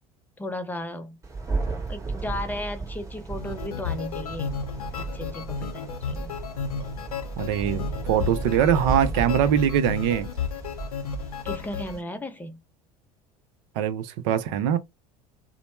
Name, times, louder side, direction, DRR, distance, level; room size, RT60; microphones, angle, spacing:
voice 1, 0.4-1.2 1.9-4.5 5.0-6.3 11.4-12.6, left 1 dB, 10° left, 0.5 m, -35 dB
Thunder, 1.2-12.0, right 3 dB, 15° right, 1.2 m, -34 dB
sound 1, 3.3-12.0, left 7 dB, 75° left, 0.6 m, -34 dB
voice 2, 7.4-10.3 13.8-14.8, right 9 dB, 55° right, 0.5 m, -23 dB
3.0 x 2.0 x 2.9 m
figure-of-eight pair, 70°, 19 cm